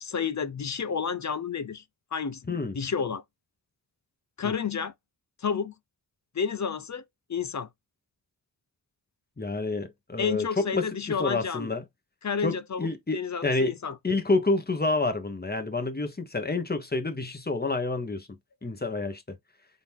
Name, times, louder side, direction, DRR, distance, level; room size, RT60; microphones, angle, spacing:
voice 1, 0.0-1.8 2.1-3.2 4.4-4.9 5.4-5.7 6.3-7.0 7.3-7.7 10.2-11.7 12.2-14.0, left 6 dB, 40° left, 0.7 m, -30 dB
voice 2, 9.4-11.8 12.4-13.7 14.0-18.3 18.6-19.4, left 3 dB, 25° left, 1.4 m, -28 dB
4.0 x 3.0 x 3.6 m
cardioid pair, 65°, 42 cm